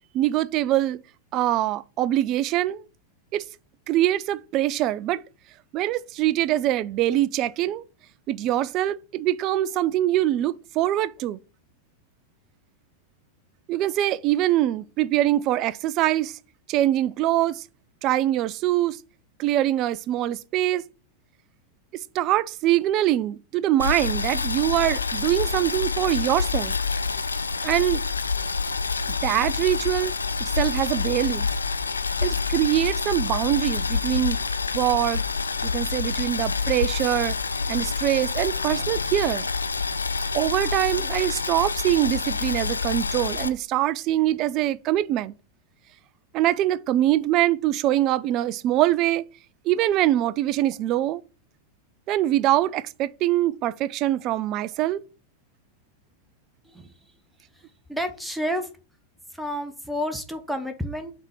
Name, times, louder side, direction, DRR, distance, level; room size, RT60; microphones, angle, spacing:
voice 1, 0.1-1.0 1.3-2.8 3.3-3.4 3.9-5.2 5.7-7.8 8.3-11.4 13.7-16.4 16.7-17.6 18.0-19.0 19.4-20.8 22.1-26.8 27.6-28.0 29.2-30.1 30.4-31.5 32.2-34.4 34.7-35.2 35.6-37.4 37.7-39.5 40.3-45.3 46.3-49.2 49.6-51.2 52.1-55.0, right 13 dB, 40° right, 0.4 m, -23 dB
Boiling, 23.8-43.5, left 4 dB, 75° left, 0.4 m, -27 dB
voice 2, 57.9-58.7 59.3-61.1, equal, ahead, 0.9 m, -30 dB
5.6 x 3.5 x 5.7 m
figure-of-eight pair, 90°, 0 cm